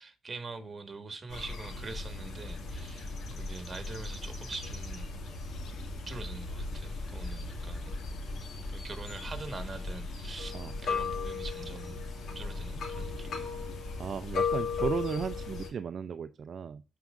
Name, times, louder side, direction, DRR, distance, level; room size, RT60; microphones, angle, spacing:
voice 1, 0.0-5.1 6.1-8.0 8.7-12.0 12.4-13.5, right 3 dB, 30° right, 1.7 m, -44 dB
sound 1, 1.3-15.7, left 4 dB, 60° left, 2.2 m, -37 dB
voice 2, 14.0-16.8, right 7 dB, 50° right, 0.4 m, -35 dB
13.0 x 4.7 x 2.6 m
cardioid pair, 90°, 0 cm